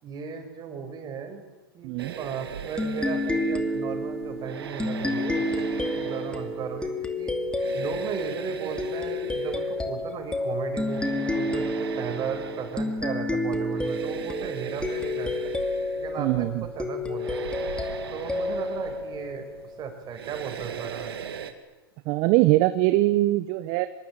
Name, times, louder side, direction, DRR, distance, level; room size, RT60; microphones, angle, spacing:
voice 1, 0.0-1.4 1.7-7.4 7.7-15.5 16.0-17.4 18.1-19.5 19.8-21.2, right 6 dB, 35° right, 6 dB, 6.0 m, -36 dB
voice 2, 1.8-2.1 16.2-16.6 22.0-23.9, right 17 dB, 50° right, 11 dB, 1.3 m, -22 dB
sound 1, 2.0-21.5, right 8 dB, 85° right, 2.7 m, -40 dB
sound 2, 2.8-19.9, left 1 dB, 10° left, 2.6 m, -30 dB
25.0 x 22.5 x 9.2 m, 1.1 s
hypercardioid pair, 110°, 13 cm